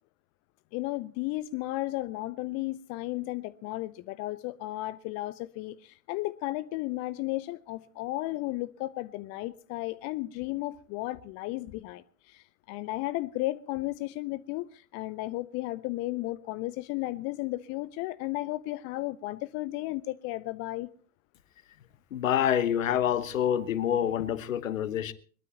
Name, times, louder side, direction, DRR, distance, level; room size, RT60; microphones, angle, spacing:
voice 1, 0.7-20.9, left 18 dB, 40° left, 0.6 m, -34 dB
voice 2, 22.1-25.1, left 10 dB, 70° left, 1.3 m, -27 dB
22.0 x 21.5 x 2.9 m
figure-of-eight pair, 80°, 42 cm